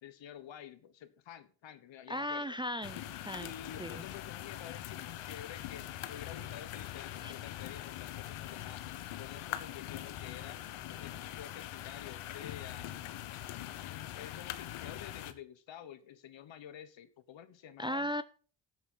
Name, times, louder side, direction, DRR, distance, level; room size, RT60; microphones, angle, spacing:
voice 1, 0.0-2.5 3.4-8.8 9.2-10.6 10.9-13.2 13.8-18.1, left 9 dB, 65° left, 13 dB, 1.4 m, -50 dB
voice 2, 2.1-3.5 3.8-4.0 7.2-7.3 17.8-18.2, left 1 dB, 10° right, 13 dB, 0.4 m, -36 dB
sound 1, 2.8-15.3, left 13 dB, 85° left, 1.1 m, -43 dB
sound 2, 6.2-11.2, right 5 dB, 85° right, 3.8 m, -67 dB
14.0 x 8.1 x 3.9 m, 0.41 s
cardioid pair, 90°, 49 cm